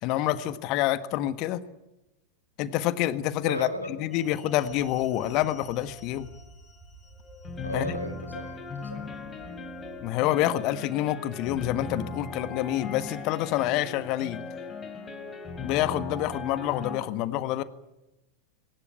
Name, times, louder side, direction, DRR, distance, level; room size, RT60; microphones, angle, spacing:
voice 1, 0.0-1.6 2.6-6.3 7.7-7.9 10.0-14.4 15.6-17.6, left 13 dB, 40° left, 14 dB, 1.5 m, -27 dB
voice 2, 3.4-4.3 7.6-9.0, equal, 90° right, 7 dB, 3.9 m, -36 dB
sound 1, 4.1-17.0, left 4 dB, 20° left, 3.7 m, -39 dB
sound 2, 4.6-10.1, right 3 dB, 35° right, 5.1 m, -52 dB
20.5 x 18.5 x 9.6 m, 0.96 s
figure-of-eight pair, 90°, 0 cm